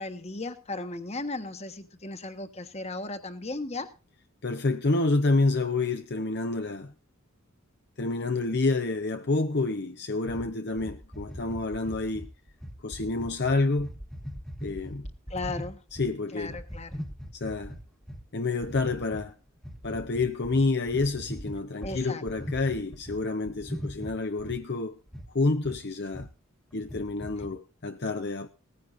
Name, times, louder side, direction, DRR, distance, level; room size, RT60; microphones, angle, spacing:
voice 1, 0.0-3.9 15.3-15.8 16.3-16.9 21.8-22.2, left 2 dB, 30° left, 1.3 m, -36 dB
voice 2, 4.4-6.9 8.0-12.3 12.8-13.9 14.6-15.1 15.9-16.6 17.3-17.7 18.3-19.3 19.8-25.0 25.3-26.3 26.7-28.5, left 3 dB, 50° left, 0.8 m, -28 dB
sound 1, 10.3-16.1 16.4-18.2 18.6-19.2 19.6-23.2 23.5-24.6 25.1-25.3 25.6-25.8 26.1-26.3 26.7-27.5, equal, ahead, 1.3 m, -39 dB
18.5 x 15.0 x 2.6 m
head